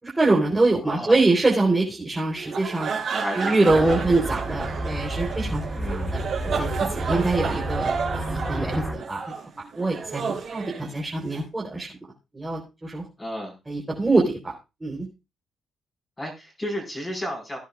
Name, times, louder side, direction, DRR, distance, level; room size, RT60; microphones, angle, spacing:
voice 1, 0.0-2.9 3.4-6.2 6.6-9.2 9.8-10.2 10.5-11.9 12.3-13.0 13.7-14.5 14.8-15.1, right 2 dB, 15° right, -3 dB, 3.8 m, -24 dB
voice 2, 0.8-1.2 3.1-4.0 5.8-6.1 13.2-13.5 16.2-17.6, equal, 15° left, 0 dB, 5.0 m, -32 dB
sound 1, 2.4-11.4, right 5 dB, 55° right, 4.6 m, -31 dB
sound 2, 3.7-9.0, right 1 dB, ahead, 5.0 m, -30 dB
17.5 x 10.5 x 2.4 m, 0.27 s
cardioid pair, 90°, 0 cm